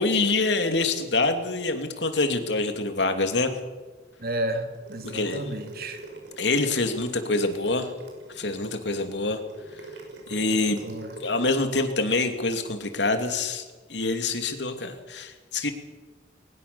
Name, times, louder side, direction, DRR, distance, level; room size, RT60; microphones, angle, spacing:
voice 1, 0.0-3.5 5.0-5.5 6.4-7.9 8.3-9.4 10.3-10.8 11.2-13.6 13.9-15.7, left 3 dB, 80° left, 7 dB, 2.8 m, -25 dB
voice 2, 4.2-6.0 10.8-11.2, right 1 dB, 55° right, 6 dB, 2.7 m, -32 dB
sound 1, 4.7-11.4, right 1 dB, 85° right, 6.1 m, -43 dB
21.5 x 20.0 x 7.0 m, 1.3 s
head